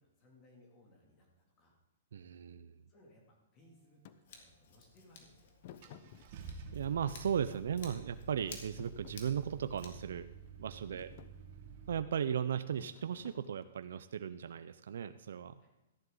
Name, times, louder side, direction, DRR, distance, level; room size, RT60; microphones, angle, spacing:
voice 1, 0.0-1.8 2.9-5.5 5.8-6.3 10.8-11.1 15.6-15.7, left 1 dB, 30° left, 0 dB, 2.6 m, -64 dB
voice 2, 2.1-2.8 6.7-10.3 10.6-11.1 11.9-15.6, right 8 dB, 75° right, 11 dB, 0.5 m, -36 dB
Thump thud, 4.0-4.2 5.6-6.7 7.1-8.1 8.5-9.9 10.5-10.7 11.0-11.3 12.8-13.9, left 10 dB, 45° left, 0.8 m, -55 dB
Scissors, 4.2-9.9, left 5 dB, 65° left, 2.4 m, -55 dB
Car / Engine starting, 5.1-5.2 5.8-12.0, right 5 dB, 50° right, 1.5 m, -50 dB
14.0 x 11.0 x 3.9 m, 1.0 s
hypercardioid pair, 150°, 0 cm